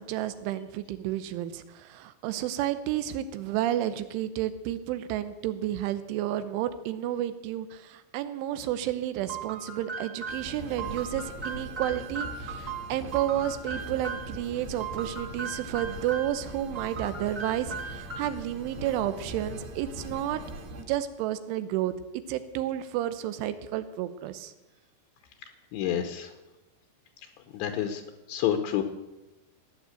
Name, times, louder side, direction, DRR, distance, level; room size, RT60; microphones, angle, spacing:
voice 1, 0.0-20.4 20.8-21.9 22.3-24.5, right 12 dB, 85° right, 12 dB, 3.2 m, -31 dB
sound 1, 9.3-14.4 14.8-16.4 16.7-18.5, right 5 dB, 25° right, 1.7 m, -38 dB
sound 2, 10.3-20.8, equal, 60° right, 3.2 m, -42 dB
voice 2, 25.7-26.3 27.5-28.0 28.3-28.8, left 10 dB, 75° left, 6 dB, 3.1 m, -28 dB
16.5 x 9.6 x 8.0 m, 1.0 s
omnidirectional pair, 5.6 m